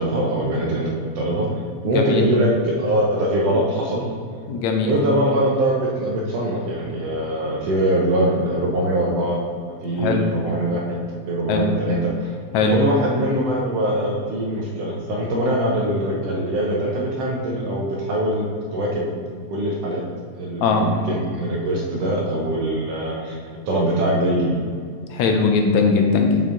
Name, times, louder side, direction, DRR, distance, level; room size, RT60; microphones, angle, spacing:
voice 1, 0.0-4.1 4.8-9.4 9.8-11.0 11.3-12.3 12.7-19.1 19.5-20.0 20.4-23.4 23.7-24.6, right 1 dB, 70° right, -2 dB, 1.7 m, -22 dB
voice 2, 1.9-2.2 4.5-4.9 10.0-10.3 11.5-11.7 12.5-12.8 20.6-20.9 25.1-26.4, left 4 dB, 80° left, 3 dB, 1.9 m, -19 dB
7.3 x 5.5 x 3.7 m, 2.2 s
omnidirectional pair, 3.4 m